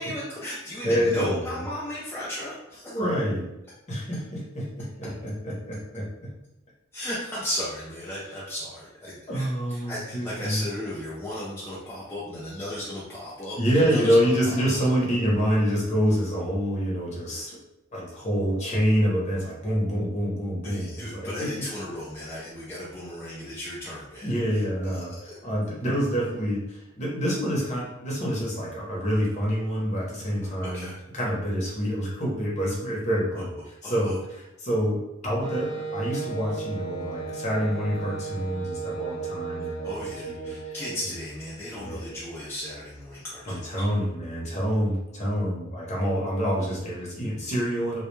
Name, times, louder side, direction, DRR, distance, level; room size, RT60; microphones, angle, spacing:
voice 1, 0.0-3.0 6.9-15.0 20.6-25.4 30.6-31.0 33.3-34.2 39.6-43.9, left 1 dB, 10° left, -8 dB, 0.4 m, -35 dB
voice 2, 0.8-1.5 2.9-3.5 3.9-6.3 9.3-10.6 13.6-17.6 17.9-21.6 24.2-25.1 25.4-30.9 31.1-33.6 33.8-40.7 41.7-42.2 43.5-48.0, equal, 35° left, -4 dB, 0.7 m, -27 dB
Wind instrument woodwind instrument, 35.4-41.1, right 5 dB, 85° left, 0.9 m, -35 dB
2.2 x 2.1 x 3.0 m, 0.90 s
head